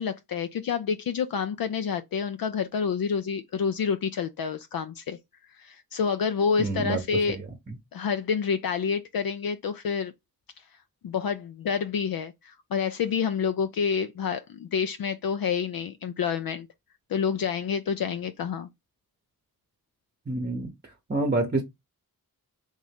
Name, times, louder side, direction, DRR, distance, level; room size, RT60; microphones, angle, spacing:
voice 1, 0.0-5.2 5.5-7.4 7.9-10.1 11.0-16.7 17.1-18.7, left 6 dB, 70° left, 0.5 m, -28 dB
voice 2, 6.6-7.0 7.3-7.4 20.3-20.7 21.1-21.6, right 2 dB, 25° right, 0.8 m, -27 dB
3.5 x 2.7 x 3.4 m
cardioid pair, 50°, 37 cm